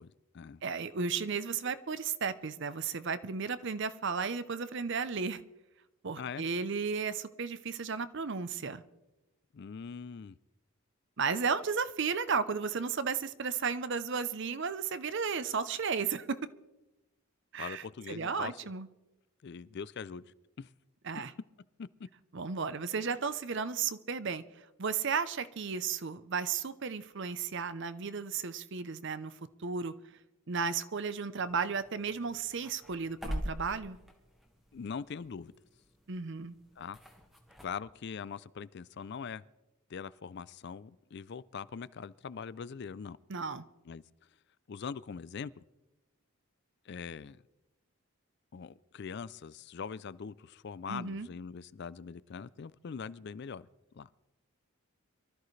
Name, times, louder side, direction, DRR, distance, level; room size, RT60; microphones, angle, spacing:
voice 1, 0.0-0.6 6.2-6.4 9.5-10.4 17.6-18.6 19.4-20.3 20.6-20.7 21.8-21.9 34.7-35.5 36.8-37.0 37.6-39.4 39.9-43.2 43.9-44.0 44.7-45.6 46.9-47.4 48.5-53.7 53.9-54.1, left 6 dB, 50° left, 0.4 m, -42 dB
voice 2, 0.6-5.4 6.0-8.8 11.2-16.4 17.5-18.9 21.0-21.3 22.3-24.4 24.8-29.3 29.6-29.9 30.5-34.0 36.1-36.6 43.3-43.7 50.9-51.3, right 5 dB, 55° right, 0.7 m, -34 dB
sound 1, 31.4-37.7, equal, ahead, 1.5 m, -45 dB
23.5 x 13.5 x 3.2 m
head